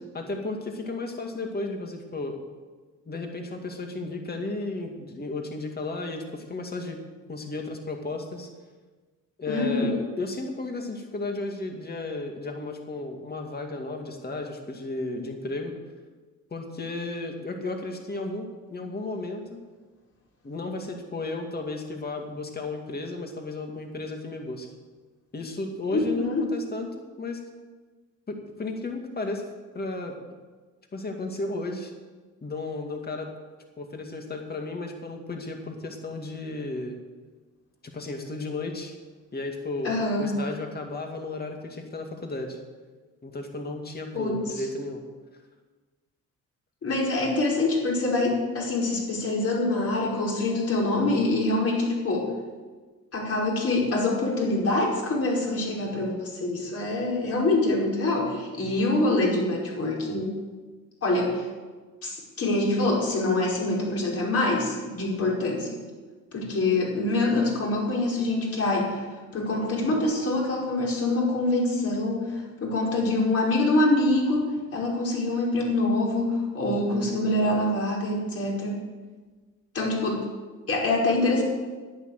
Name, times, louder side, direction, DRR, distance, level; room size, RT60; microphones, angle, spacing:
voice 1, 0.1-2.4 3.1-7.0 7.3-8.5 9.4-15.8 16.5-19.6 20.4-24.7 25.3-27.4 28.3-29.4 29.7-30.2 30.9-31.9 32.4-33.3 33.8-37.0 37.9-38.9 39.3-42.6 43.2-45.0 58.6-58.9, left 2 dB, 30° left, 3 dB, 2.4 m, -34 dB
voice 2, 9.5-9.9 25.9-26.5 39.8-40.3 44.1-44.4 46.8-52.3 53.1-60.3 61.0-61.4 62.0-65.8 66.3-69.0 69.3-78.8 79.7-80.2 80.7-81.4, left 2 dB, 50° left, -3 dB, 5.0 m, -25 dB
11.0 x 9.7 x 8.0 m, 1.4 s
cardioid pair, 90°, 30 cm